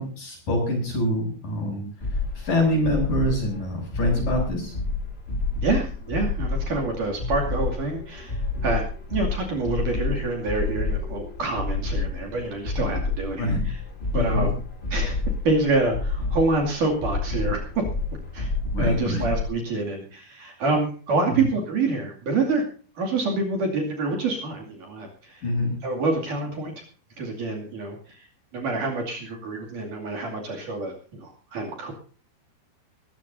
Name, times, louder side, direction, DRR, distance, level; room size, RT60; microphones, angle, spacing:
voice 1, 0.0-1.9 2.4-4.7 13.4-13.6 14.2-14.5 18.7-19.3 25.4-25.8, left 1 dB, 50° left, 1 dB, 8.9 m, -25 dB
sound 1, 2.0-19.4, left 3 dB, 25° left, 1.3 m, -29 dB
voice 2, 5.6-8.8 9.1-13.8 14.1-14.5 14.9-15.2 15.5-17.8 18.3-18.5 18.8-22.6 23.0-25.4 25.8-26.8 27.2-28.2 28.5-31.9, right 3 dB, 50° right, 1 dB, 3.7 m, -27 dB
22.5 x 14.0 x 2.7 m, 0.40 s
omnidirectional pair, 5.1 m